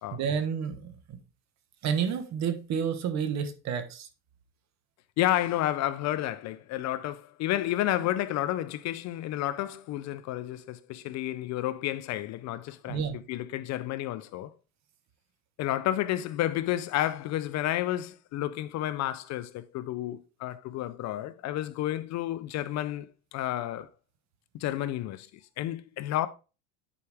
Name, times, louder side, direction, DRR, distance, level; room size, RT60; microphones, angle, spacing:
voice 1, 0.1-1.2 1.8-4.1 12.9-13.2, right 7 dB, 45° right, 1.3 m, -30 dB
voice 2, 5.2-14.5 15.6-23.9 24.5-25.3 25.6-26.3, left 13 dB, 45° left, 0.5 m, -31 dB
9.9 x 4.6 x 3.5 m
cardioid pair, 130°, 39 cm